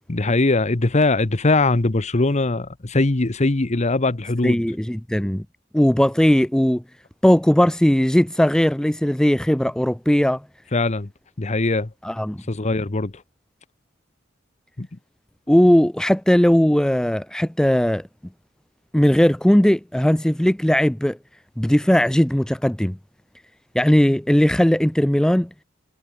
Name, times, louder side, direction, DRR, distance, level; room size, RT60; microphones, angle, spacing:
voice 1, 0.1-4.6 10.7-11.1 11.4-11.9 12.5-13.1 14.8-14.9, left 2 dB, 35° left, 0.9 m, -21 dB
voice 2, 4.4-5.4 5.7-6.8 7.2-10.4 12.0-12.4 15.5-18.0 18.9-21.2 21.6-23.0 23.7-25.5, equal, 5° left, 0.4 m, -18 dB
head